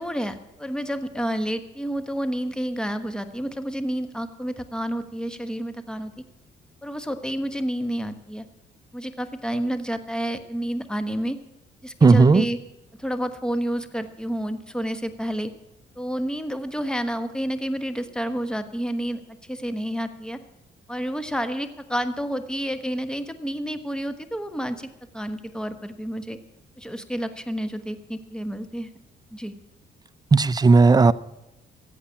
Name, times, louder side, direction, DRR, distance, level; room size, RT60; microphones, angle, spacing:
voice 1, 0.0-6.1 6.8-8.4 8.9-11.4 11.8-12.6 13.0-15.5 16.0-19.2 19.5-20.4 20.9-26.4 26.8-28.9 29.3-29.5, equal, 5° left, 9 dB, 1.2 m, -29 dB
voice 2, 12.0-12.5 30.3-31.1, right 4 dB, 20° right, 15 dB, 0.5 m, -14 dB
14.5 x 8.4 x 8.5 m, 0.94 s
cardioid pair, 90°, 20 cm